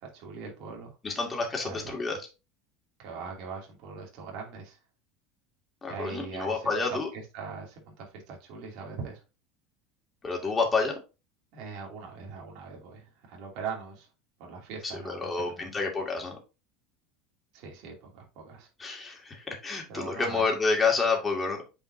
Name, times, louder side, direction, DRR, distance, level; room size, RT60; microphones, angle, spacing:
voice 1, 0.0-0.9 1.6-2.0 3.0-4.8 5.9-9.2 11.5-14.1 14.4-15.8 17.5-18.7 19.9-20.5, right 5 dB, 60° right, 0 dB, 2.6 m, -41 dB
voice 2, 1.0-2.2 5.8-7.1 10.2-11.0 15.1-16.4 18.8-21.6, left 4 dB, 15° left, 1 dB, 2.2 m, -29 dB
8.2 x 5.0 x 2.7 m, 0.29 s
supercardioid pair, 140°, 0 cm